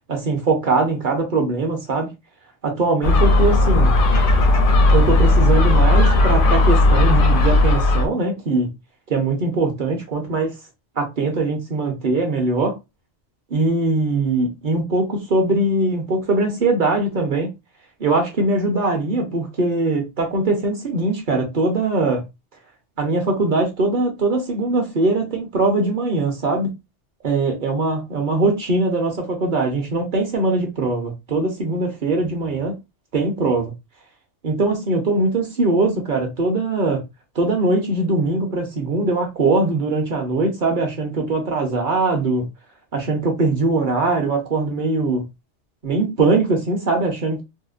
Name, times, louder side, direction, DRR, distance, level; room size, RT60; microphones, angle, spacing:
voice 1, 0.1-2.1 2.6-4.0 4.9-8.7 9.1-10.5 11.0-12.8 13.5-17.5 18.0-22.3 23.0-26.7 27.2-32.8 33.1-33.7 34.4-37.0 37.3-42.5 42.9-45.3 45.8-47.4, right 3 dB, 50° right, 0.8 m, -21 dB
Gull seagull, 3.0-8.1, left 2 dB, 60° left, 0.6 m, -15 dB
2.8 x 2.1 x 2.4 m
omnidirectional pair, 1.2 m